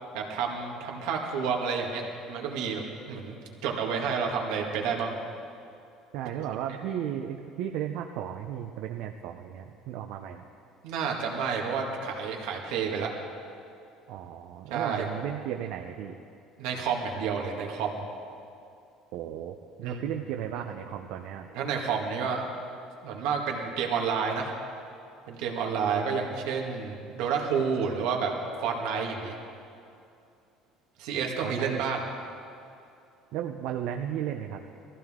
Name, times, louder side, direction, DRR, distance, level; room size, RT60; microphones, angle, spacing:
voice 1, 0.1-2.0 2.3-2.8 3.1-5.2 10.8-13.1 14.7-15.1 16.6-17.9 19.8-20.0 21.5-22.5 23.0-24.5 25.3-28.3 28.6-29.4 31.0-32.0, right 6 dB, 75° right, 1 dB, 2.0 m, -30 dB
voice 2, 6.1-10.4 14.1-16.2 19.1-21.5 31.1-31.9 33.3-34.6, right 10 dB, 60° right, 4 dB, 0.6 m, -35 dB
20.0 x 15.0 x 3.7 m, 2.5 s
cardioid pair, 170°, 0 cm